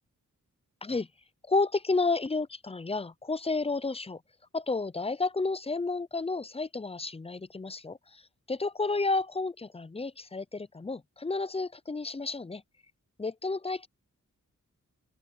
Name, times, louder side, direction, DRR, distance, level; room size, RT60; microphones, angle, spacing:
voice 1, 1.5-4.2 4.5-8.2 8.5-12.6 13.2-13.9, left 3 dB, 20° left, 0.5 m, -31 dB
open air
wide cardioid pair, 85°, 32 cm